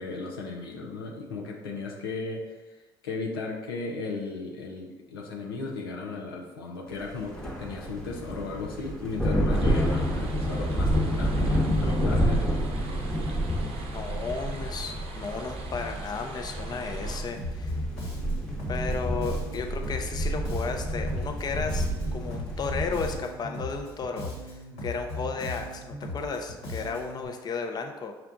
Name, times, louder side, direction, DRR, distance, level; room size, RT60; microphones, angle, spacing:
voice 1, 0.0-12.6, left 3 dB, 90° left, -1 dB, 0.6 m, -36 dB
sound 1, 7.1-23.2, equal, 5° left, 1.0 m, -29 dB
sound 2, 9.5-17.2, right 3 dB, 55° right, 0.7 m, -44 dB
voice 2, 13.8-17.8 18.7-21.9 22.1-24.3 24.8-28.1, left 4 dB, 35° left, 4 dB, 0.5 m, -34 dB
Bass guitar, 17.4-27.2, left 1 dB, 70° left, 1.4 m, -37 dB
5.9 x 2.3 x 3.7 m, 1.2 s
hypercardioid pair, 55°, 12 cm